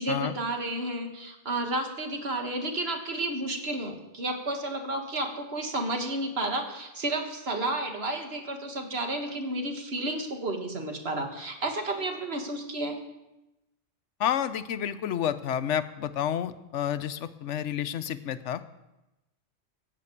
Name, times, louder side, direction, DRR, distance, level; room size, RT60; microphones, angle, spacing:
voice 1, 0.0-13.0, right 2 dB, 55° right, 4 dB, 1.8 m, -31 dB
voice 2, 14.2-18.6, left 9 dB, 80° left, 13 dB, 1.0 m, -30 dB
15.5 x 5.8 x 8.5 m, 0.98 s
omnidirectional pair, 1.2 m